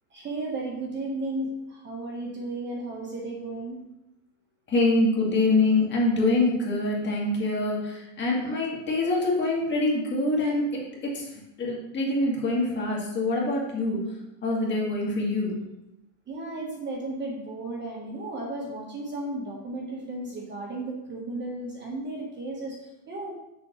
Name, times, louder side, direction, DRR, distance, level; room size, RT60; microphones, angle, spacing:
voice 1, 0.1-3.8 16.3-22.8 23.1-23.3, right 2 dB, 25° right, -1 dB, 1.2 m, -34 dB
voice 2, 4.7-10.6 11.1-11.2 11.6-14.0 14.4-15.5, left 2 dB, 25° left, -3 dB, 2.0 m, -25 dB
6.8 x 6.8 x 3.1 m, 0.90 s
supercardioid pair, 140°, 43 cm